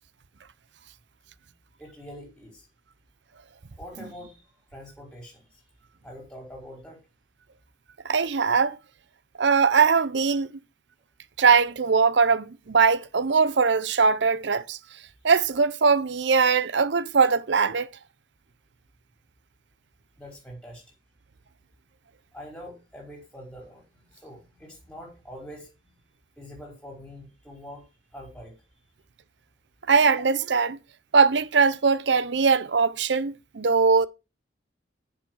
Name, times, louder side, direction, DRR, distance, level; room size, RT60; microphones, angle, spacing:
voice 1, 1.8-2.6 3.8-5.6 6.0-7.0 20.2-20.8 22.3-25.9 26.4-27.8 28.1-28.5, equal, 5° left, 4.7 m, -44 dB
voice 2, 8.0-8.8 9.4-10.5 11.4-14.8 15.2-17.9 29.9-30.8 31.1-34.1, right 5 dB, 70° right, 0.6 m, -21 dB
7.5 x 6.6 x 6.2 m
head